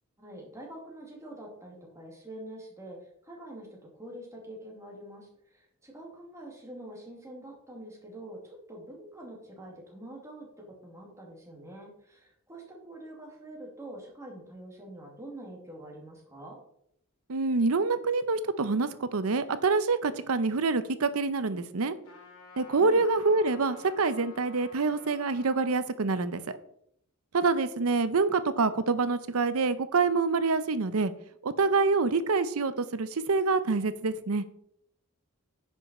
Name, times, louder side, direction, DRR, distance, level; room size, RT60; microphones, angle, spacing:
voice 1, 0.2-16.6 22.8-23.1, right 1 dB, 15° right, -1 dB, 2.2 m, -45 dB
voice 2, 17.3-22.0 22.6-26.4 27.3-31.1 31.4-34.4, right 4 dB, 70° right, 13 dB, 0.7 m, -26 dB
Trumpet, 22.0-25.7, left 4 dB, 65° left, 2.6 m, -51 dB
9.8 x 5.6 x 4.2 m, 0.72 s
head